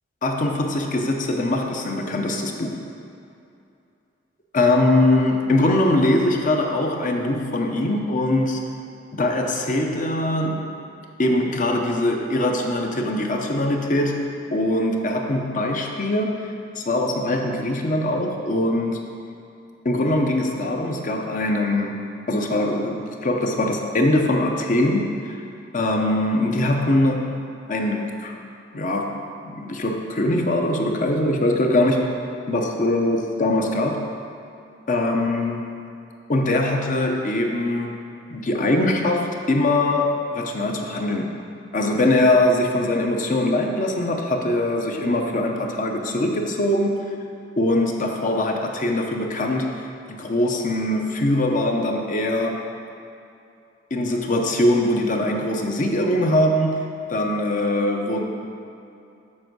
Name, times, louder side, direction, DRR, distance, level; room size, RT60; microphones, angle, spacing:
voice 1, 0.2-2.7 4.5-8.6 9.1-10.7 11.2-19.0 19.8-22.0 22.3-25.4 25.7-28.3 28.7-32.2 32.5-34.1 34.9-35.7 36.3-38.0 38.3-41.4 41.7-47.0 47.6-49.7 50.1-52.6 53.9-58.2, left 1 dB, 45° left, 2 dB, 0.7 m, -22 dB
7.5 x 4.6 x 6.1 m, 2.6 s
head